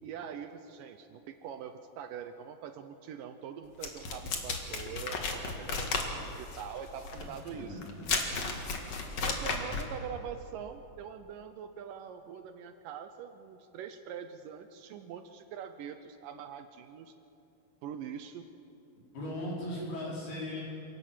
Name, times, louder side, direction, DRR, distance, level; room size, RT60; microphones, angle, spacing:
voice 1, 0.0-7.8 8.4-8.6 9.2-17.1 17.8-18.5, right 8 dB, 75° right, 9 dB, 2.1 m, -43 dB
sound 1, 3.8-9.9, left 4 dB, 50° left, 2.6 m, -34 dB
voice 2, 7.2-8.1 19.1-20.6, left 1 dB, 80° left, -5 dB, 7.0 m, -38 dB
26.5 x 17.5 x 7.5 m, 2.9 s
omnidirectional pair, 4.4 m